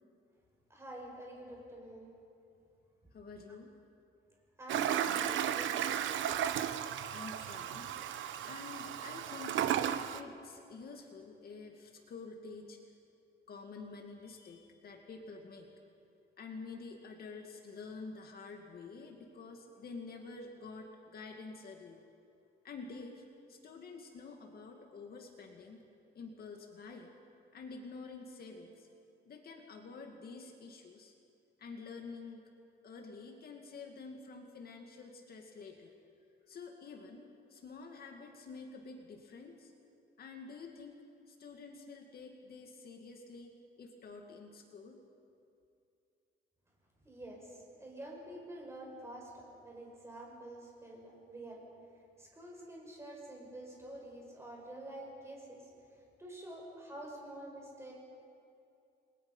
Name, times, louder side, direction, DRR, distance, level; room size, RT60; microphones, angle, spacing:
voice 1, 0.7-2.1 4.6-5.9 47.0-51.6 52.2-55.7 56.2-57.9, right 1 dB, 15° right, -2 dB, 5.9 m, -48 dB
voice 2, 3.1-3.7 7.1-12.8 13.5-15.7 16.4-22.0 22.6-23.2 23.5-25.8 26.1-27.1 27.5-28.9 29.3-31.1 31.6-32.4 32.8-35.9 36.5-39.7 40.2-41.0 41.3-45.0, left 4 dB, 55° left, 3 dB, 2.2 m, -49 dB
Toilet flush, 4.7-10.2, right 10 dB, 90° right, 0.9 m, -34 dB
30.0 x 22.0 x 5.6 m, 2.6 s
cardioid pair, 150°, 19 cm